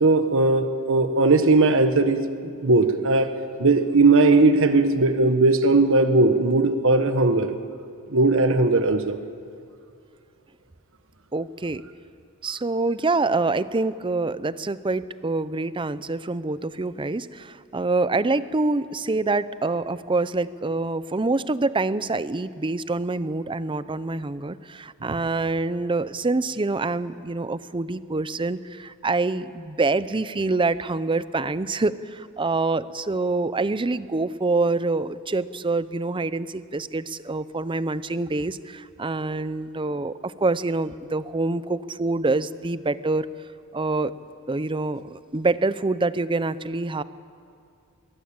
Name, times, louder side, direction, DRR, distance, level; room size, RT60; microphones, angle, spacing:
voice 1, 0.0-2.2 2.6-3.3 3.6-7.5 8.1-9.2, right 3 dB, 65° right, 8 dB, 1.3 m, -18 dB
voice 2, 11.3-11.8 12.4-43.3 43.7-44.1 44.5-47.0, right 3 dB, 25° right, 15 dB, 0.6 m, -26 dB
23.5 x 20.0 x 8.8 m, 2.4 s
head